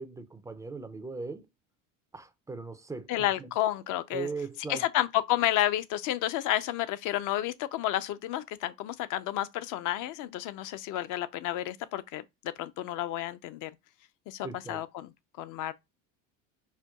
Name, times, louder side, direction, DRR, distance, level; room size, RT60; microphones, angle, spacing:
voice 1, 0.0-1.5 2.1-3.5 4.1-4.9 14.4-14.8, right 4 dB, 10° right, 0.3 m, -39 dB
voice 2, 3.1-4.3 4.7-12.2 12.6-13.7 14.3-15.1 15.4-15.7, left 13 dB, 55° left, 0.5 m, -31 dB
4.4 x 2.2 x 2.2 m
supercardioid pair, 95°, 39 cm